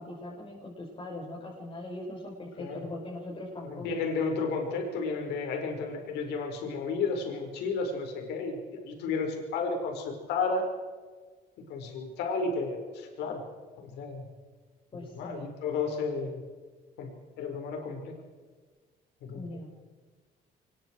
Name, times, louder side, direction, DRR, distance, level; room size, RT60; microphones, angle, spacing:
voice 1, 0.0-4.1 14.9-15.4 19.3-19.8, left 1 dB, 30° left, -3 dB, 5.8 m, -41 dB
voice 2, 2.6-2.9 3.6-10.6 11.7-13.4 13.8-14.2 15.0-16.4 17.0-17.1 17.4-18.1 19.2-19.6, left 4 dB, 85° left, 3 dB, 5.0 m, -32 dB
25.0 x 22.0 x 4.7 m, 1.4 s
cardioid pair, 110°, 17 cm